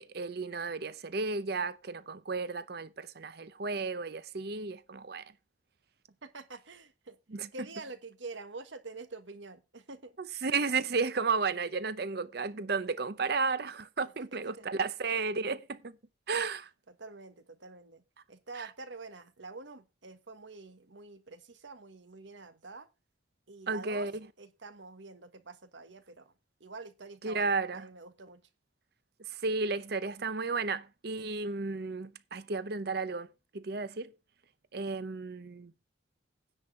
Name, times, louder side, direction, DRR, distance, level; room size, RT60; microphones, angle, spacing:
voice 1, 0.0-5.3 7.3-7.5 10.2-15.9 16.3-16.6 18.6-18.7 23.7-24.1 27.2-27.8 29.4-33.3 33.5-34.1 34.7-35.7, right 4 dB, 55° right, 0.7 m, -33 dB
voice 2, 6.2-7.2 7.5-10.1 14.0-14.1 14.6-14.7 16.3-16.5 16.9-18.0 18.3-22.9 23.5-24.1 24.4-26.3 26.6-28.4, right 3 dB, 75° right, 1.5 m, -47 dB
9.9 x 4.5 x 7.5 m
head